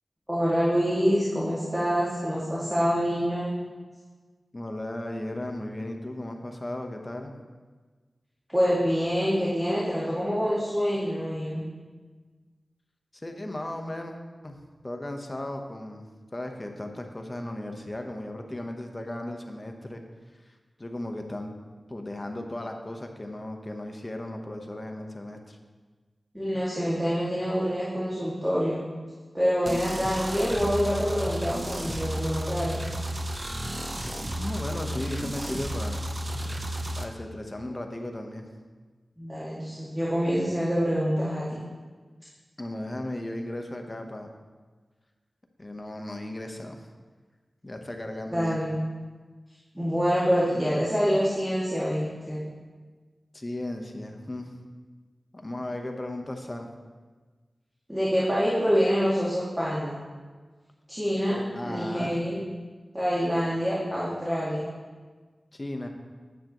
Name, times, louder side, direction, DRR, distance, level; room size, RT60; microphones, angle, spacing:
voice 1, 0.3-3.5 8.5-11.7 26.3-28.8 29.3-32.8 39.2-41.6 48.3-48.7 49.7-52.4 57.9-60.0 60.9-62.4 62.9-64.6, equal, 10° right, -8 dB, 2.1 m, -26 dB
voice 2, 4.5-7.3 13.1-14.1 14.4-20.0 20.8-21.5 21.9-25.6 34.4-36.0 36.9-38.5 42.6-44.3 45.6-46.8 47.6-48.6 53.3-54.5 55.4-56.7 61.5-62.2 65.5-65.9, left 1 dB, 30° left, 4 dB, 0.9 m, -36 dB
sound 1, 29.7-37.0, equal, 35° right, 0.8 m, -33 dB
9.2 x 7.5 x 3.0 m, 1.4 s
wide cardioid pair, 60°, 0 cm